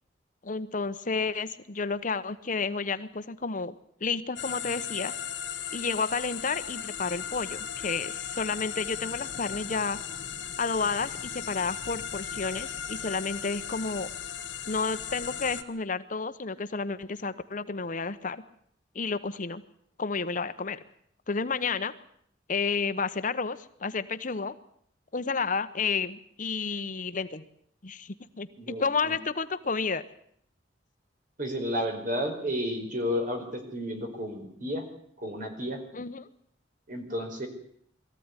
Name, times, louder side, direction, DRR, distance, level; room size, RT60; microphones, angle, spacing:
voice 1, 0.4-3.7 4.0-5.1 5.7-10.0 10.6-14.1 14.7-18.4 18.9-19.6 20.0-20.8 21.3-21.9 22.5-24.5 25.1-27.4 27.8-30.0 35.9-36.3, left 4 dB, 45° left, 12 dB, 0.9 m, -31 dB
sound 1, 4.4-15.6, left 8 dB, 80° left, 1.9 m, -37 dB
voice 2, 28.6-29.1 31.4-34.8 35.2-35.8 36.9-37.5, equal, 50° right, 4 dB, 4.9 m, -32 dB
22.0 x 14.5 x 9.8 m, 0.66 s
head